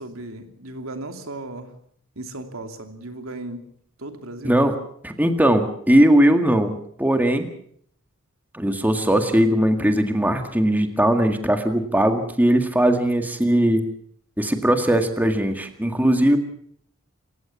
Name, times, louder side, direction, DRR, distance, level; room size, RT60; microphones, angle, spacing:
voice 1, 0.0-1.7 2.1-3.7 4.0-4.6, right 2 dB, 80° right, 6 dB, 2.9 m, -36 dB
voice 2, 5.0-6.7 7.0-7.5 8.5-13.8 14.4-16.4, right 1 dB, 10° right, 6 dB, 1.9 m, -19 dB
27.0 x 16.0 x 7.1 m, 0.63 s
head